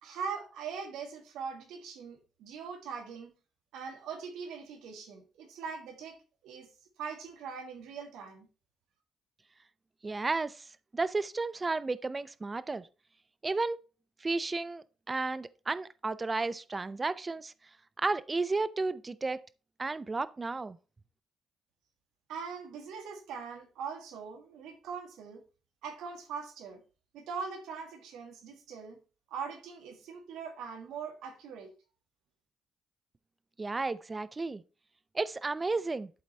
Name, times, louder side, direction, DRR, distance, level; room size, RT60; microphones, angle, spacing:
voice 1, 0.0-3.3 3.7-6.2 6.4-6.7 7.0-8.5 22.3-25.4 25.8-26.8 27.1-29.0 29.3-31.7, right 6 dB, 85° right, 1.6 m, -41 dB
voice 2, 10.0-10.7 10.9-12.9 13.4-13.8 14.2-17.5 18.0-19.4 19.8-20.8 33.6-34.6 35.1-36.1, right 3 dB, 25° right, 0.5 m, -33 dB
11.5 x 4.0 x 3.2 m
cardioid pair, 90°, 0 cm